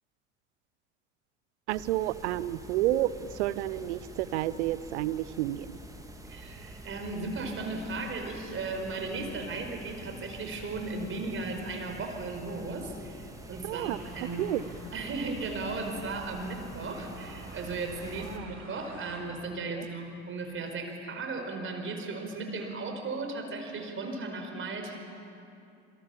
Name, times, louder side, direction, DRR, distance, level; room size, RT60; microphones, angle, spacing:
sound 1, 1.7-18.4, right 1 dB, 10° right, 2.6 m, -47 dB
voice 1, 1.7-5.8 13.6-14.0 14.4-14.6 18.3-18.5 19.8-19.9, right 14 dB, 65° right, 18 dB, 0.8 m, -30 dB
voice 2, 6.3-14.5 14.9-25.0, right 3 dB, 35° right, 4 dB, 4.9 m, -36 dB
sound 2, 13.8-19.2, right 3 dB, 80° right, 5.3 m, -49 dB
27.0 x 24.5 x 7.2 m, 2.7 s
figure-of-eight pair, 70°, 37 cm